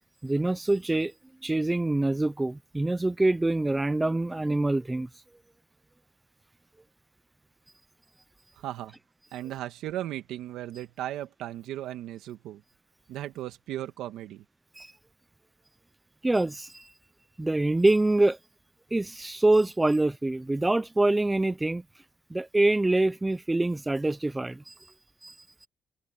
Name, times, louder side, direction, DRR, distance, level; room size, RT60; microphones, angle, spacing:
voice 1, 0.2-1.1 1.4-5.1 14.8-14.9 16.2-16.9 17.4-18.4 18.9-21.8 22.3-24.7 25.2-25.4, right 2 dB, 15° right, 0.5 m, -25 dB
voice 2, 8.6-9.0 9.3-12.6 13.1-14.4, right 13 dB, 90° right, 2.1 m, -36 dB
cardioid pair, 90°, 0 cm